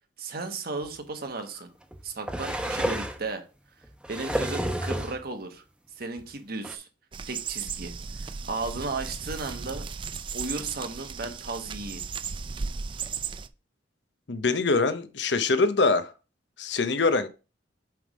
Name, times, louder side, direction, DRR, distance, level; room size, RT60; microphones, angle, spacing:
voice 1, 0.2-1.7 2.0-3.4 4.1-5.6 6.0-6.9 7.3-9.9 10.3-12.0, right 3 dB, 55° right, 1.2 m, -35 dB
sound 1, 0.8-0.9 1.9-3.2 3.8-5.2 6.2-6.3 6.6-6.8, right 1 dB, 5° right, 0.8 m, -30 dB
sound 2, 7.1-13.5, right 5 dB, 25° right, 0.3 m, -36 dB
voice 2, 14.3-16.1 16.6-17.3, left 3 dB, 70° left, 0.8 m, -24 dB
7.8 x 3.4 x 5.1 m
head